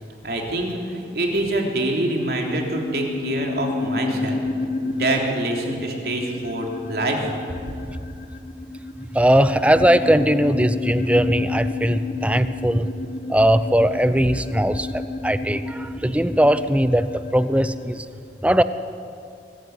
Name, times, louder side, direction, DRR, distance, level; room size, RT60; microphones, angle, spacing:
voice 1, 0.2-4.4 4.8-7.2, right 1 dB, 60° right, 1 dB, 3.5 m, -25 dB
sound 1, 1.6-18.0, left 3 dB, 45° left, 1.4 m, -31 dB
voice 2, 9.1-12.9 13.3-18.1 18.4-18.6, equal, 5° right, 12 dB, 0.7 m, -19 dB
23.5 x 15.0 x 9.5 m, 2.5 s
head